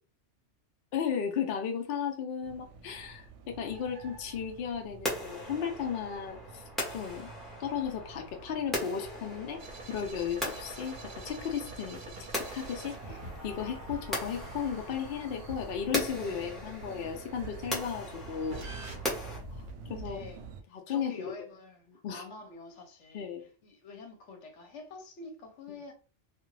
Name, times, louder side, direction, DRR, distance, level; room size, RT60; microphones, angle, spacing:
voice 1, 0.9-6.6 6.9-7.3 7.6-9.6 9.9-11.0 11.2-12.0 12.5-18.6 19.5-19.6 19.9-20.2 20.7-21.1 22.0-22.2 23.1-23.4, left 7 dB, 60° left, 0.7 m, -35 dB
sound 1, 2.4-20.6, right 4 dB, 75° right, 0.9 m, -49 dB
sound 2, 5.0-19.4, equal, ahead, 0.8 m, -39 dB
sound 3, 9.6-17.0 18.5-19.7, right 1 dB, 45° right, 0.9 m, -46 dB
voice 2, 19.9-20.4 20.9-25.9, left 3 dB, 75° left, 1.1 m, -47 dB
2.5 x 2.4 x 3.1 m
omnidirectional pair, 1.2 m